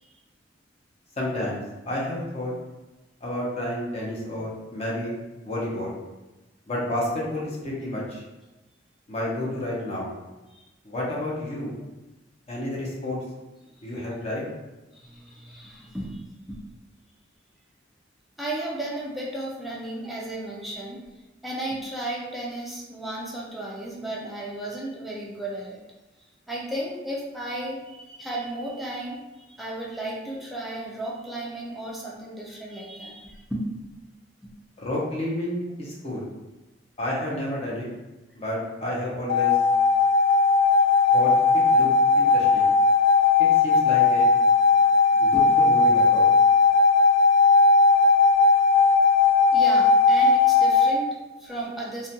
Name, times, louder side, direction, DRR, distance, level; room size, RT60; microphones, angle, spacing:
voice 1, 1.2-2.5 3.2-5.1 5.4-5.9 6.7-8.2 9.1-10.1 10.8-11.7 12.5-13.2 13.8-14.5 34.8-36.3 37.0-37.9 38.3-39.6 41.1-41.3 41.7-42.7 43.4-44.3 45.2-46.3, left 1 dB, 35° left, -5 dB, 0.7 m, -30 dB
voice 2, 14.9-16.6 18.4-21.0 21.4-25.8 26.5-33.7 34.4-34.5 45.1-45.4 49.5-52.1, right 1 dB, ahead, -5 dB, 0.3 m, -34 dB
sound 1, 39.3-51.0, left 4 dB, 85° left, 0.3 m, -18 dB
2.4 x 2.1 x 2.7 m, 1.1 s
head